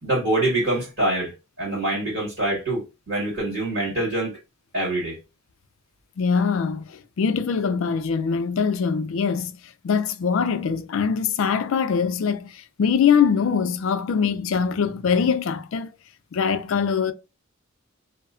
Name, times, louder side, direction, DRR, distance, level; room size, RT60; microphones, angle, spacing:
voice 1, 0.0-4.3 4.7-5.2, right 1 dB, 55° right, 1.7 m, -25 dB
voice 2, 6.2-9.5 9.8-15.9 16.3-17.1, left 6 dB, 65° left, 0.4 m, -23 dB
2.7 x 2.2 x 2.5 m
head